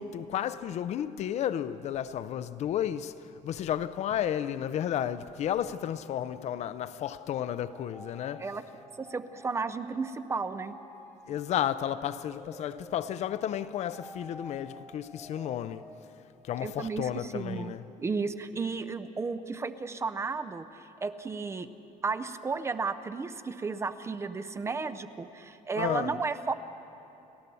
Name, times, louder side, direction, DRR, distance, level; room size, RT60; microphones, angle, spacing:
voice 1, 0.0-8.5 11.3-15.9 16.4-17.8 25.8-26.2, left 10 dB, 50° left, 0.6 m, -32 dB
sound 1, 7.0-16.8, equal, 15° left, 4.3 m, -52 dB
voice 2, 9.0-10.7 16.6-21.7 22.0-26.5, right 4 dB, 20° right, 0.6 m, -33 dB
30.0 x 13.0 x 6.9 m
cardioid pair, 170°, 14 cm